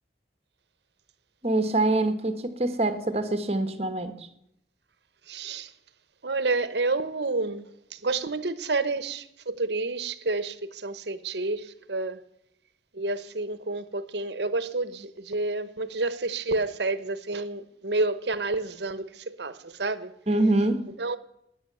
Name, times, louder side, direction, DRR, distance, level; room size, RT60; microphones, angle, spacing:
voice 1, 1.4-4.3 20.3-20.8, right 2 dB, 35° right, 1.4 m, -25 dB
voice 2, 5.3-5.7 6.2-12.2 12.9-20.1 21.0-21.2, right 3 dB, 75° right, 1.0 m, -29 dB
14.0 x 10.0 x 6.9 m
head